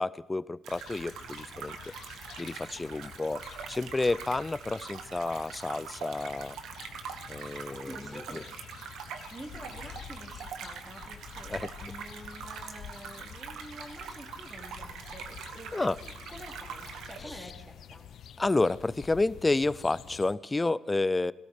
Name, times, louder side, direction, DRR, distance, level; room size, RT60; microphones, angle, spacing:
voice 1, 0.0-1.8 2.4-3.4 3.7-6.6 7.3-8.4 11.5-11.7 15.7-16.0 17.2-17.4 18.4-21.3, left 2 dB, 20° left, 20 dB, 0.4 m, -30 dB
sound 1, 0.6-17.2, right 7 dB, 80° right, 1.3 m, -44 dB
sound 2, 0.7-20.3, left 9 dB, 70° left, 0.6 m, -49 dB
voice 2, 7.7-8.5 9.1-18.0, right 1 dB, 15° right, 0 dB, 2.7 m, -48 dB
17.5 x 13.0 x 5.0 m, 1.2 s
cardioid pair, 90°, 0 cm